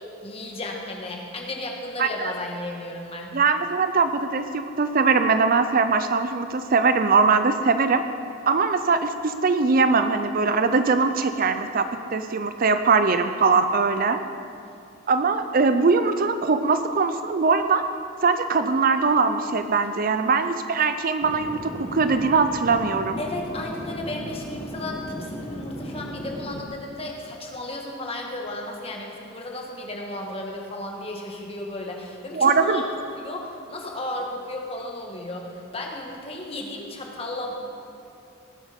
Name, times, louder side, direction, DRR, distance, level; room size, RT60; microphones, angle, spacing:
voice 1, 0.2-3.3 23.2-32.8 33.1-37.5, left 1 dB, 25° left, 0 dB, 1.6 m, -34 dB
voice 2, 2.0-2.3 3.3-8.0 8.5-11.9 12.1-14.2 15.1-17.8 18.2-23.2 32.3-32.8, right 4 dB, 40° right, 9 dB, 0.5 m, -21 dB
Chatter / Fixed-wing aircraft airplane, 21.2-26.6, equal, 10° left, 1.4 m, -36 dB
19.0 x 7.9 x 5.2 m, 2.5 s
head